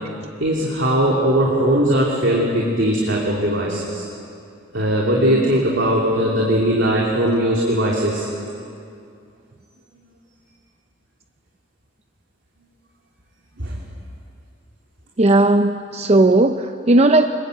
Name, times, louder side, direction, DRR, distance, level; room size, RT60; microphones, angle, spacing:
voice 1, 0.4-4.0 4.7-8.3 13.6-13.8, right 1 dB, 65° right, -3 dB, 3.1 m, -19 dB
voice 2, 15.2-17.3, right 2 dB, 35° right, 7 dB, 0.6 m, -15 dB
26.0 x 21.0 x 8.1 m, 2.5 s
head